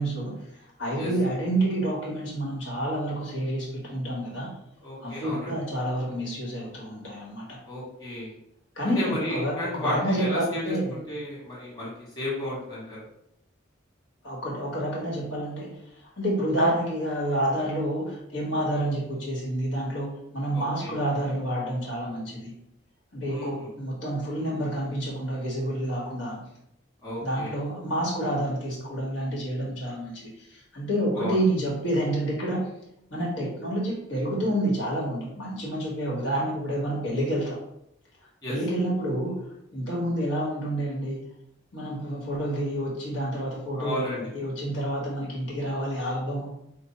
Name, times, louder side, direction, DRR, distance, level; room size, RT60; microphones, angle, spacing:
voice 1, 0.0-4.5 5.0-7.6 8.7-11.0 14.2-15.8 16.2-22.5 23.1-26.4 27.2-32.7 33.1-37.6 38.5-39.4 39.7-41.3 41.7-44.0 44.3-46.5, right 1 dB, 75° left, -4 dB, 1.4 m, -29 dB
voice 2, 4.8-5.5 7.7-8.3 8.9-10.7 11.1-11.9 12.2-13.0 20.5-20.9 23.3-23.7 27.0-27.5 31.1-31.4 38.4-38.5 43.8-44.2, left 1 dB, 20° left, -7 dB, 1.4 m, -33 dB
5.1 x 2.1 x 4.2 m, 0.81 s
head